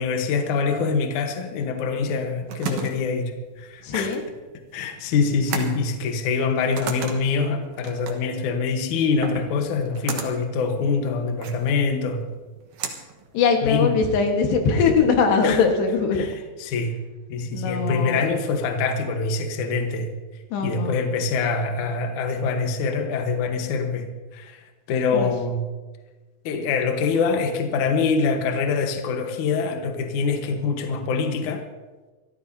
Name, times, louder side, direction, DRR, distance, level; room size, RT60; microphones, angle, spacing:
voice 1, 0.0-4.1 4.7-12.3 13.6-14.0 15.4-15.6 16.2-16.3 16.6-16.9 17.3-20.1 20.6-24.1 24.3-25.7 26.4-31.6, left 4 dB, 60° left, 5 dB, 2.3 m, -24 dB
sound 1, 2.1-14.0, right 6 dB, 60° right, 2.1 m, -36 dB
voice 2, 3.8-4.2 13.3-16.2 17.5-18.3 20.5-21.0 25.1-25.3, left 5 dB, 90° left, 3 dB, 3.7 m, -21 dB
25.5 x 13.5 x 2.8 m, 1.3 s
omnidirectional pair, 4.7 m